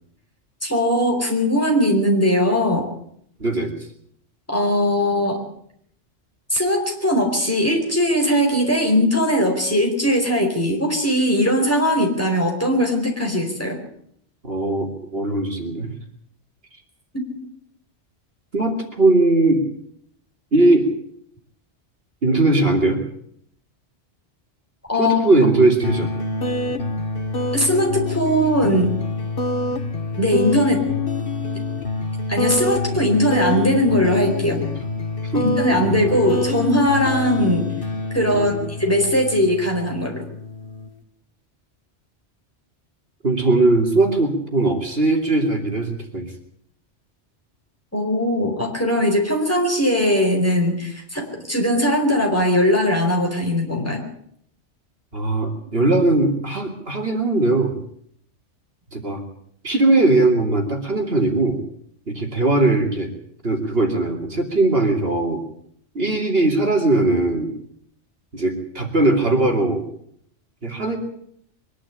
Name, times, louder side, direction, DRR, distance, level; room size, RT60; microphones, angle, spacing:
voice 1, 0.6-2.9 4.5-5.4 6.5-13.8 17.1-17.2 24.9-25.2 27.5-28.9 30.2-30.9 32.3-34.6 35.4-37.7 38.1-40.2 47.9-54.0, equal, 10° left, 1 dB, 4.7 m, -20 dB
voice 2, 3.4-3.7 14.4-15.9 18.5-19.6 20.5-20.9 22.2-23.0 25.0-26.1 35.3-36.2 38.3-38.7 43.2-46.3 55.1-57.8 58.9-59.2 59.6-61.6 62.1-63.1 63.4-65.4 65.9-67.5 68.3-69.9 70.6-71.0, right 2 dB, 55° right, 3 dB, 3.0 m, -19 dB
sound 1, 25.8-40.9, left 3 dB, 50° left, 1.8 m, -26 dB
23.0 x 11.5 x 10.0 m, 0.68 s
omnidirectional pair, 1.2 m